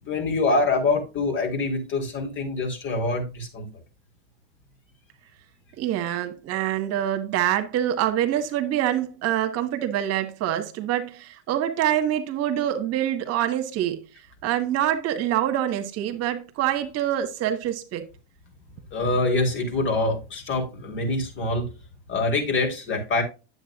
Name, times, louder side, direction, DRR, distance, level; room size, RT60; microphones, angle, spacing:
voice 1, 0.0-3.7 18.9-21.7 22.1-23.2, left 2 dB, 40° left, 3.6 m, -25 dB
voice 2, 5.8-14.0 14.4-18.0, right 11 dB, 50° right, 1.3 m, -25 dB
9.8 x 7.8 x 2.4 m
supercardioid pair, 110°, 32 cm